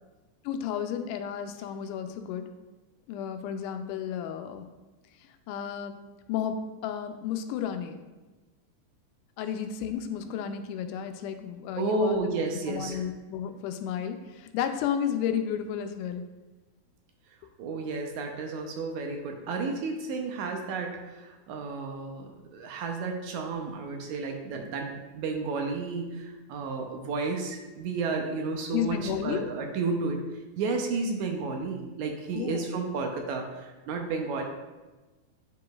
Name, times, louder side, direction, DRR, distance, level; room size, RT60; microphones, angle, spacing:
voice 1, 0.4-2.5 3.1-4.6 5.5-6.0 6.3-8.0 9.4-12.2 12.7-16.2 28.7-29.4 32.3-32.7, left 8 dB, 85° left, 7 dB, 2.1 m, -32 dB
voice 2, 11.8-13.0 17.6-30.2 30.6-34.4, right 3 dB, 75° right, 3 dB, 2.0 m, -32 dB
9.2 x 4.9 x 2.3 m, 1.2 s
omnidirectional pair, 3.6 m